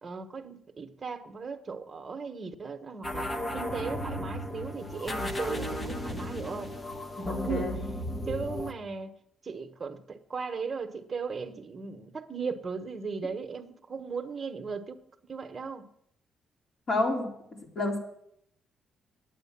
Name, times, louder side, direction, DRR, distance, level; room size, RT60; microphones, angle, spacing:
voice 1, 0.0-6.7 7.2-7.8 8.3-9.1 9.4-15.0 15.3-15.9, right 5 dB, 35° right, 7 dB, 1.2 m, -37 dB
sound 1, 3.0-8.7, left 1 dB, 20° left, 1.1 m, -34 dB
voice 2, 7.3-7.7 16.9-17.3 17.8-18.0, left 2 dB, 50° left, 0 dB, 3.6 m, -29 dB
9.4 x 9.3 x 7.4 m, 0.75 s
cardioid pair, 100°, 0 cm